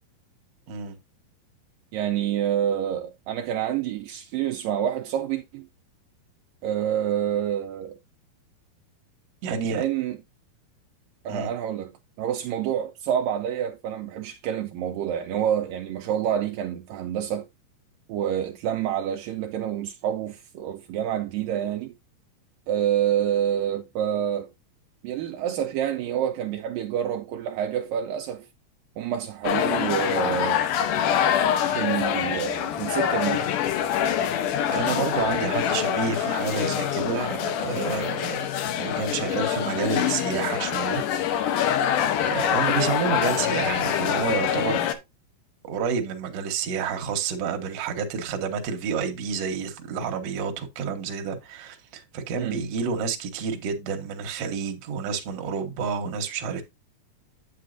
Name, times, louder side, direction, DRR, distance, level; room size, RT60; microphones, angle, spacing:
voice 1, 1.9-5.7 6.6-8.0 9.7-10.2 11.3-11.9 12.2-17.5 18.1-21.9 22.7-24.5 25.0-28.5 29.0-30.7 31.7-33.5 52.4-52.6, right 10 dB, 85° right, 1.9 m, -27 dB
voice 2, 9.4-9.8 11.3-11.5 34.7-38.4 38.8-41.0 41.3-41.8 42.2-44.9 45.6-56.6, right 6 dB, 65° right, 1.6 m, -29 dB
sound 1, 29.4-44.9, left 9 dB, 75° left, 2.0 m, -25 dB
8.5 x 8.3 x 2.6 m
omnidirectional pair, 4.6 m